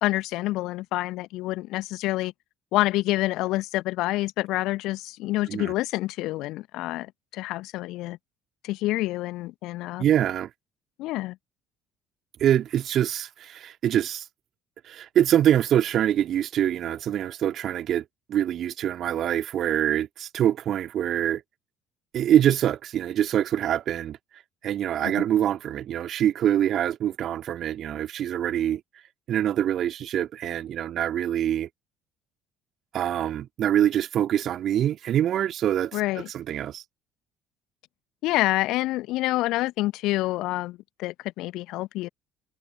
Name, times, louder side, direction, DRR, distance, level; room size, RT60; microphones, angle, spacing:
voice 1, 0.0-2.3 2.7-8.2 8.6-10.0 11.0-11.4 35.9-36.3 38.2-42.1, left 18 dB, 60° left, 1.2 m, -27 dB
voice 2, 10.0-10.5 12.4-14.3 14.8-18.0 18.3-21.4 22.1-24.2 24.6-28.8 29.3-31.7 32.9-36.0 36.3-36.8, right 10 dB, 50° right, 2.8 m, -24 dB
figure-of-eight pair, 55°, 0 cm